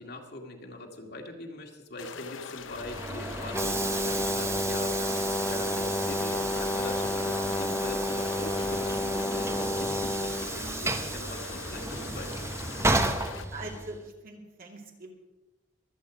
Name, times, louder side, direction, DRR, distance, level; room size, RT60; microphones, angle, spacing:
voice 1, 0.0-5.0 5.4-12.9, left 1 dB, 55° left, 1 dB, 2.2 m, -42 dB
sound 1, 2.0-13.5, left 6 dB, 75° left, 0.7 m, -43 dB
Train / Sliding door, 2.6-14.0, right 2 dB, 15° right, 1.0 m, -33 dB
Brass instrument, 3.5-10.5, left 2 dB, 15° left, 0.4 m, -31 dB
voice 2, 13.5-15.1, right 2 dB, 50° right, 1 dB, 2.6 m, -42 dB
23.0 x 8.5 x 5.1 m, 1.1 s
head